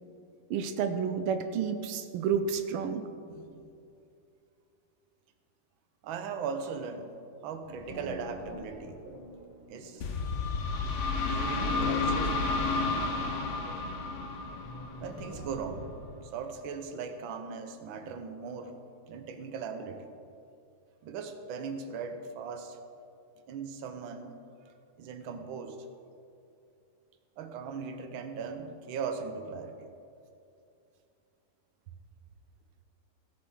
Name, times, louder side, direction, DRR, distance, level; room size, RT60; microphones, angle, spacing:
voice 1, 0.5-3.0, right 6 dB, 90° right, 8 dB, 1.6 m, -30 dB
voice 2, 3.3-3.7 6.0-7.1 7.4-9.0 9.7-10.0 11.2-12.5 15.0-15.9 16.2-18.7 19.1-20.1 21.0-22.8 23.5-24.4 24.7-25.8 27.4-29.9, right 5 dB, 70° right, 6 dB, 1.6 m, -39 dB
sound 1, 7.6-16.1, equal, 15° left, 3.0 m, -45 dB
sound 2, 10.0-15.6, left 3 dB, 55° left, 0.8 m, -31 dB
17.5 x 8.0 x 3.8 m, 2.5 s
omnidirectional pair, 2.3 m